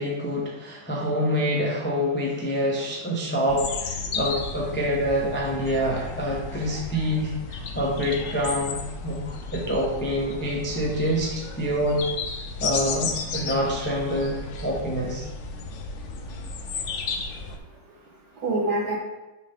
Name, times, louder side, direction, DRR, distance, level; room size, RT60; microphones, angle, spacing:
voice 1, 0.0-9.2 9.5-12.0 12.6-15.3, equal, 15° left, -3 dB, 0.4 m, -26 dB
sound 1, 3.5-17.6, left 4 dB, 70° left, 0.7 m, -33 dB
voice 2, 16.9-19.0, right 2 dB, 55° right, -3 dB, 1.7 m, -30 dB
5.9 x 5.6 x 3.5 m, 1.1 s
omnidirectional pair, 2.0 m